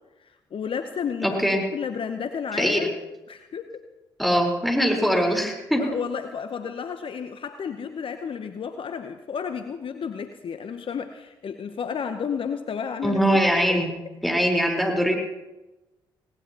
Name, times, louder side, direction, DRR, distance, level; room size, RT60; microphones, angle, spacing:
voice 1, 0.2-1.4 1.7-2.9 3.3-3.7 5.8-13.2 13.7-13.8, left 6 dB, 50° left, 8 dB, 0.9 m, -32 dB
voice 2, 1.2-1.6 2.6-2.9 4.2-5.8 13.0-13.9 14.2-15.1, equal, ahead, 1 dB, 4.3 m, -22 dB
19.0 x 18.5 x 3.0 m, 1.1 s
hypercardioid pair, 45°, 11 cm